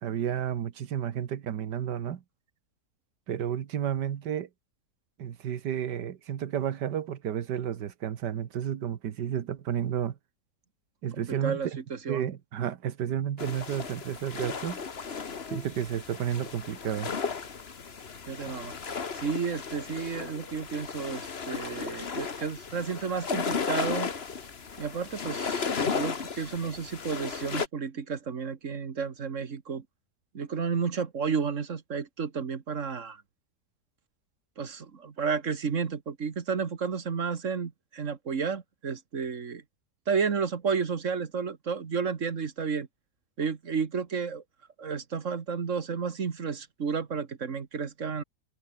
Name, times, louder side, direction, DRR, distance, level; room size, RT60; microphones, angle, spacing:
voice 1, 0.0-2.2 3.3-4.5 5.2-10.2 11.0-11.8 12.1-14.8 15.5-17.1, right 9 dB, 85° right, 1.8 m, -31 dB
voice 2, 11.3-12.3 18.3-18.8 19.2-24.1 24.8-29.8 30.3-33.2 34.6-39.6 40.1-42.9 43.4-44.4 44.8-48.2, right 6 dB, 50° right, 1.8 m, -32 dB
sound 1, 13.4-27.7, left 5 dB, 40° left, 1.6 m, -35 dB
omnidirectional pair, 1.8 m